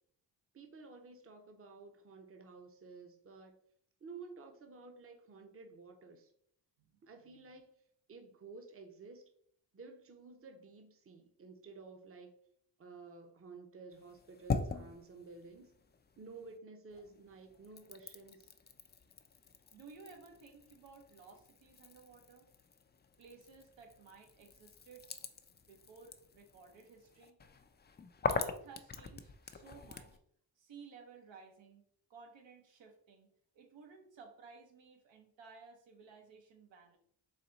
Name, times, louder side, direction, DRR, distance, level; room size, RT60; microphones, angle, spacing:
voice 1, 0.5-3.6 4.0-6.3 7.0-7.7 8.1-9.2 9.7-12.4 12.8-15.7 16.2-18.5, right 4 dB, 30° right, 4 dB, 0.7 m, -53 dB
sound 1, 13.9-16.6 16.9-30.2, left 4 dB, 25° left, 0.4 m, -43 dB
voice 2, 19.7-22.5 23.2-25.1 25.7-27.4 28.3-30.2 30.6-31.8 32.1-37.0, right 5 dB, 85° right, 3 dB, 1.1 m, -56 dB
4.1 x 2.9 x 4.0 m, 0.66 s
cardioid pair, 80°, 44 cm